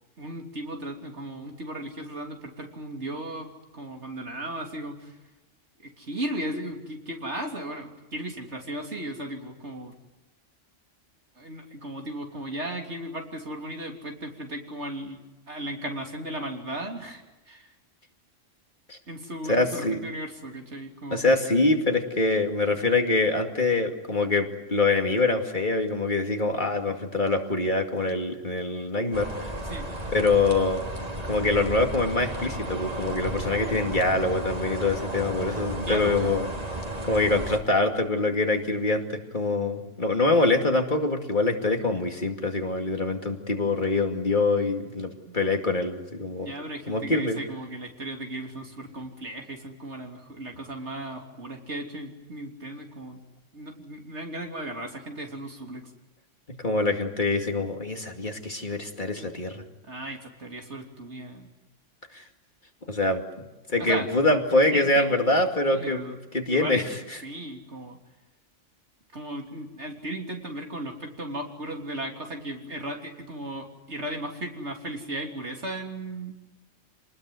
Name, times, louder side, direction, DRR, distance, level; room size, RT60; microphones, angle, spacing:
voice 1, 0.2-5.2 5.8-9.9 11.4-15.2 15.5-17.7 19.1-21.3 29.6-29.9 35.8-36.3 45.3-45.4 46.4-53.2 53.5-55.9 59.8-61.5 63.8-64.1 64.7-65.0 65.6-66.1 66.5-68.0 69.1-76.3, right 1 dB, 60° right, 2 dB, 3.6 m, -36 dB
voice 2, 19.5-20.0 21.1-29.5 30.1-30.8 31.3-36.5 37.0-46.5 46.9-47.4 56.6-59.6 62.1-62.2 62.9-66.0 66.3-66.8 67.1-67.2, left 2 dB, 40° left, 3 dB, 2.6 m, -24 dB
sound 1, 29.1-37.6, right 1 dB, 30° right, 3.0 m, -33 dB
28.0 x 20.0 x 9.5 m, 1.1 s
omnidirectional pair, 1.3 m